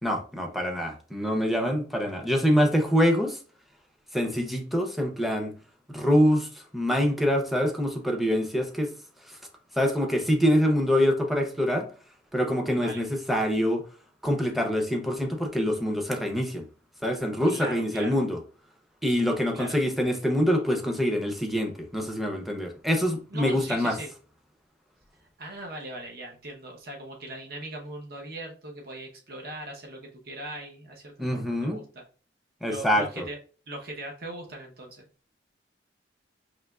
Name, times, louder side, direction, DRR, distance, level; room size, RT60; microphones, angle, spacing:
voice 1, 0.0-3.4 4.1-5.5 5.9-8.9 9.3-9.4 9.8-11.9 12.3-13.8 14.2-16.7 17.0-18.4 19.0-24.0 31.2-31.8 32.6-33.3, equal, ahead, 0.6 m, -25 dB
voice 2, 12.7-13.0 17.5-18.2 19.5-19.9 23.3-24.1 25.4-32.0 32.7-33.4 33.7-35.0, right 1 dB, 55° right, 0.8 m, -40 dB
5.0 x 2.9 x 2.3 m
head